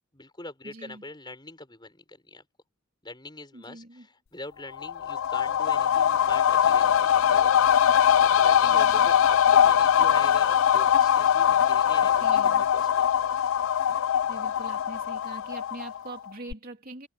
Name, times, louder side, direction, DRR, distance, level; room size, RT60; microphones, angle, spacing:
voice 1, 0.1-2.4 3.0-7.6 8.2-13.0, left 2 dB, 20° left, 5.2 m, -43 dB
voice 2, 0.6-1.0 3.5-4.1 8.6-9.1 12.0-12.6 13.8-14.0 14.3-17.1, right 2 dB, 45° right, 3.3 m, -43 dB
sound 1, 4.7-16.2 16.5-16.6, left 9 dB, 65° left, 0.4 m, -22 dB
Acoustic guitar, 6.7-11.1, right 1 dB, 75° right, 3.9 m, -61 dB
head